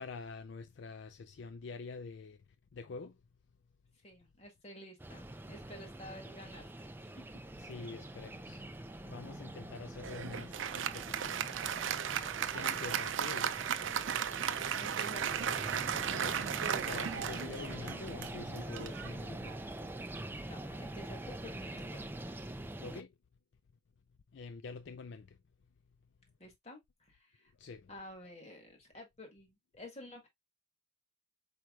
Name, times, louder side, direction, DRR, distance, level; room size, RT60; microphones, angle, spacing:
voice 1, 0.0-2.4 2.7-3.2 7.6-8.6 9.0-11.4 12.5-13.6 16.1-19.5 22.8-23.1 24.3-25.4 27.6-27.9, left 4 dB, 65° left, 0.4 m, -46 dB
voice 2, 4.0-7.4 12.7-13.1 14.7-15.6 20.5-22.6 26.4-27.5 27.9-30.3, left 1 dB, 35° left, 1.7 m, -51 dB
sound 1, 5.0-23.0, right 1 dB, 10° right, 0.4 m, -45 dB
Applause, 10.0-19.8, right 8 dB, 75° right, 0.5 m, -36 dB
4.7 x 4.6 x 2.3 m
head